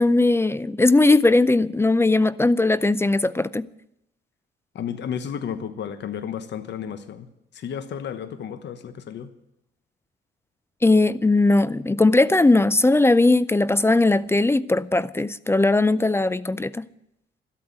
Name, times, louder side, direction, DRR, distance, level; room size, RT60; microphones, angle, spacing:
voice 1, 0.0-3.7 10.8-16.9, left 2 dB, 10° left, 0.4 m, -19 dB
voice 2, 4.7-7.3 7.5-9.3, left 8 dB, 65° left, 1.2 m, -32 dB
13.0 x 8.6 x 9.4 m
cardioid pair, 90°, 20 cm